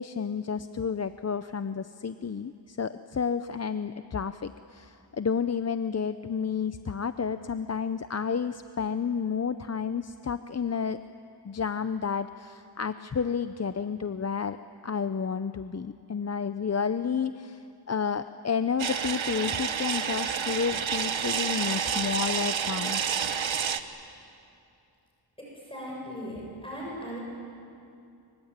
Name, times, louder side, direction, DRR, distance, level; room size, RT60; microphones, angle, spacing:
voice 1, 0.0-11.0 11.4-14.6 14.8-23.0, left 6 dB, 35° left, 11 dB, 0.6 m, -31 dB
sound 1, 18.8-23.8, right 7 dB, 80° right, 1.2 m, -29 dB
voice 2, 25.4-27.2, equal, 10° left, -4 dB, 7.6 m, -38 dB
25.5 x 24.0 x 8.9 m, 2.6 s
wide cardioid pair, 95°, 46 cm